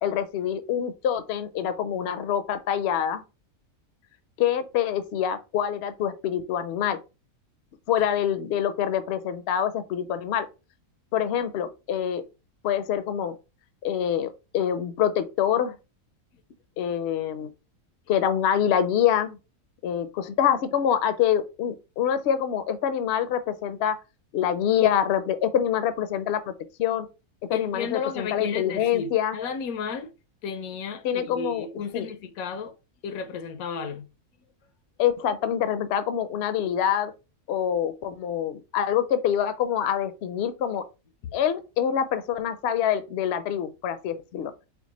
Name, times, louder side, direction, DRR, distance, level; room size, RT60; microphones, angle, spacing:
voice 1, 0.0-3.2 4.4-7.0 7.9-10.5 11.1-12.2 12.6-13.4 13.8-15.8 16.8-17.5 18.1-19.4 19.8-24.0 24.3-26.5 26.8-27.1 27.5-29.4 31.0-31.7 31.9-32.1 35.0-37.1 37.5-40.8 41.3-44.5, left 9 dB, 60° left, 0.7 m, -25 dB
voice 2, 27.5-30.1 30.4-32.7 33.0-34.1, left 6 dB, 85° left, 1.1 m, -33 dB
4.4 x 2.2 x 4.0 m
omnidirectional pair, 1.5 m